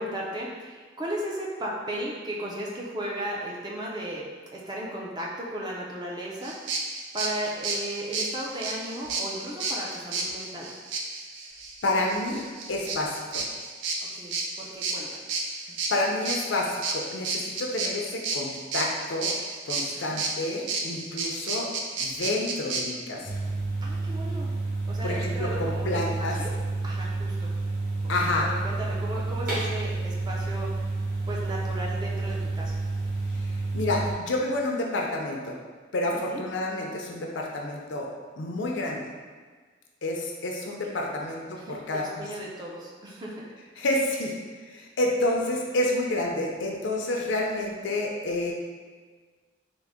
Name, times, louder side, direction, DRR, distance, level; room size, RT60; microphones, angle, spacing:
voice 1, 0.0-10.7 14.1-15.2 19.9-20.2 23.8-24.5 24.9-26.5 26.8-27.5 28.2-30.9 31.3-32.8 36.1-36.4 41.2-43.5, right 1 dB, 20° right, -3 dB, 0.4 m, -36 dB
sound 1, 6.4-22.8, right 4 dB, 80° right, 0.4 m, -32 dB
voice 2, 11.8-12.4 12.7-13.4 15.9-19.3 19.7-21.7 22.0-23.3 25.0-26.4 28.1-28.5 33.7-35.6 35.9-38.1 38.4-39.1 40.0-42.2 43.8-44.4 44.6-48.5, left 1 dB, 70° left, 0 dB, 0.5 m, -29 dB
sound 2, 23.2-34.1, right 3 dB, 45° right, 1.1 m, -30 dB
3.7 x 2.1 x 3.5 m, 1.5 s
head